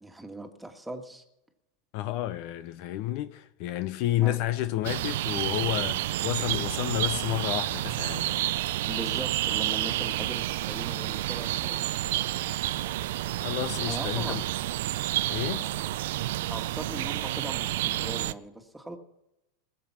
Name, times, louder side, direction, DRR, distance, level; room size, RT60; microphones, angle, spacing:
voice 1, 0.0-1.2 4.2-4.4 8.9-11.8 13.8-14.4 16.5-19.0, right 1 dB, 5° right, 1.9 m, -39 dB
voice 2, 1.9-8.3 13.3-14.4 15.3-15.7, left 14 dB, 55° left, 0.7 m, -30 dB
sound 1, 4.8-18.3, right 15 dB, 70° right, 0.4 m, -30 dB
20.5 x 7.6 x 5.8 m
hypercardioid pair, 95°, 0 cm